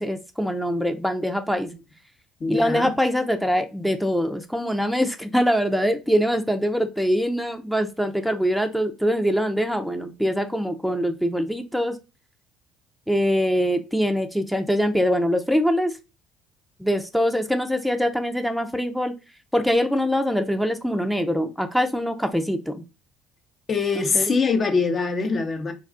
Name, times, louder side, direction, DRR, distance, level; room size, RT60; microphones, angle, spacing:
voice 1, 0.0-1.7 2.5-12.0 13.1-15.9 16.8-19.2 19.5-22.8 24.0-24.3, equal, ahead, 0.5 m, -23 dB
voice 2, 2.4-3.0 23.7-25.7, left 4 dB, 40° left, 0.7 m, -23 dB
2.4 x 2.3 x 3.6 m
hypercardioid pair, 60°, 0 cm